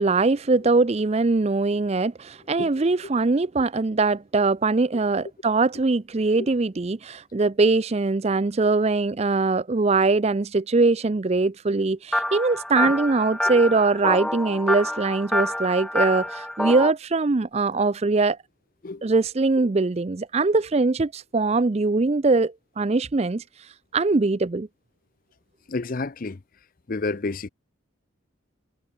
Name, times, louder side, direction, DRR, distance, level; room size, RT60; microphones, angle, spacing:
voice 1, 0.0-18.4 19.0-23.4 23.9-24.7, right 3 dB, 30° right, 0.5 m, -22 dB
sound 1, 12.1-16.9, left 1 dB, 5° left, 1.4 m, -27 dB
voice 2, 13.5-13.8 18.8-19.1 19.6-19.7 25.7-26.4 26.9-27.5, left 3 dB, 40° left, 0.6 m, -31 dB
head